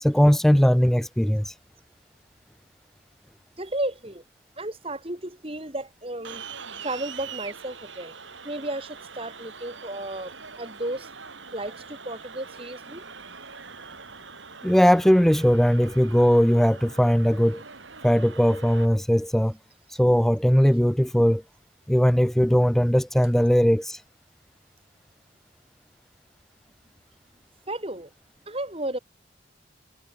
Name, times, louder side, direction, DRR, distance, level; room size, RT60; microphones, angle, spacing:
voice 1, 0.0-1.5 14.6-17.6 18.0-19.5 19.9-21.4 21.9-24.0, equal, ahead, 0.3 m, -19 dB
voice 2, 3.6-4.2 4.6-6.4 6.8-8.1 8.4-11.1 11.5-13.1 27.7-28.1 28.5-29.0, right 1 dB, 30° right, 3.7 m, -33 dB
sound 1, 6.2-18.9, right 5 dB, 75° right, 6.0 m, -43 dB
head